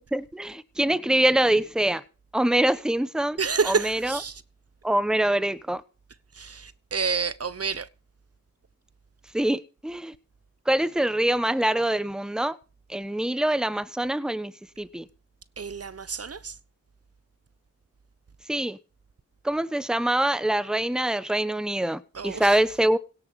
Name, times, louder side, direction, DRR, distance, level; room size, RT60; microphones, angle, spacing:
voice 1, 0.0-2.0 2.3-3.4 3.7-4.2 4.8-5.8 9.3-10.1 10.7-12.6 12.9-14.5 14.8-15.1 18.5-18.8 19.4-23.0, right 1 dB, ahead, 1.0 m, -24 dB
voice 2, 3.4-4.4 6.3-7.9 15.6-16.5 22.1-22.6, right 5 dB, 45° right, 1.0 m, -29 dB
17.0 x 7.1 x 5.3 m
cardioid pair, 45°, 34 cm